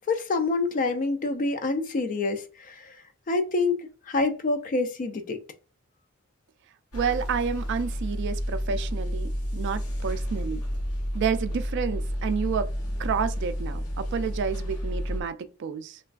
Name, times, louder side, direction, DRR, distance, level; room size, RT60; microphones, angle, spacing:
voice 1, 0.1-3.0 3.3-3.8 4.1-5.4, left 3 dB, 35° left, 0.3 m, -26 dB
sound 1, 6.9-15.2, equal, 80° left, 0.9 m, -30 dB
voice 2, 6.9-10.6 11.1-12.7 13.0-16.0, right 6 dB, 50° right, 0.3 m, -30 dB
3.2 x 2.2 x 2.3 m
head